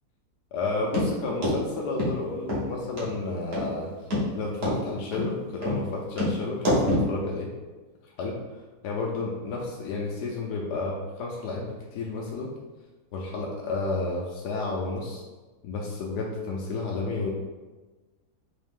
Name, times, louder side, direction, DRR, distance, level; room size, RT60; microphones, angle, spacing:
voice 1, 0.5-3.9 4.3-7.5 8.2-12.5 13.1-15.2 15.6-17.3, left 3 dB, 80° left, -2 dB, 1.2 m, -31 dB
sound 1, 0.9-1.1 1.4-1.6 2.0-2.1 2.5-2.6 3.0-3.1 3.5-3.7 4.1-4.2 4.6-4.8 5.1-5.3 5.6-5.8 6.2-6.3 6.6-7.1, left 1 dB, 55° right, 1.4 m, -25 dB
4.0 x 2.7 x 3.6 m, 1.2 s
omnidirectional pair, 1.7 m